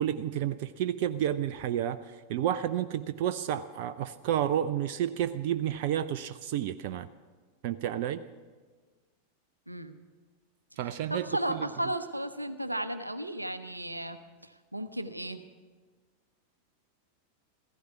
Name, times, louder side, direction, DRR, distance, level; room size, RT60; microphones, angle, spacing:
voice 1, 0.0-7.1 7.6-8.2 10.8-11.7, right 10 dB, 50° right, 12 dB, 0.5 m, -31 dB
voice 2, 9.7-10.0 11.1-15.4, right 1 dB, 85° right, 11 dB, 0.8 m, -34 dB
15.5 x 15.0 x 5.7 m, 1.4 s
figure-of-eight pair, 90°, 0 cm